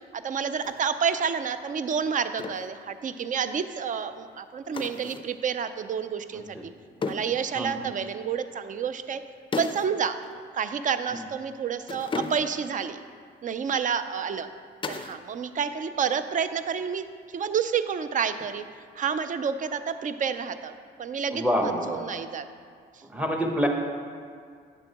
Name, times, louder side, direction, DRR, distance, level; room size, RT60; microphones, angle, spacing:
voice 1, 0.1-6.6 7.0-9.2 9.6-10.2 10.5-13.0 13.4-14.5 14.9-17.0 17.3-18.6 19.0-22.4, right 7 dB, 40° right, 11 dB, 0.4 m, -29 dB
sound 1, 0.6-0.9 2.4-2.7 4.7-5.4 7.0-7.4 9.5-10.0 10.2-10.4 11.8-12.7 14.8-15.3 15.5-16.1 18.4-18.9, left 4 dB, 25° left, 0.4 m, -35 dB
voice 2, 21.3-22.0 23.0-23.7, equal, 5° right, 2 dB, 1.0 m, -26 dB
8.9 x 6.9 x 2.9 m, 2.1 s
cardioid pair, 90°, 20 cm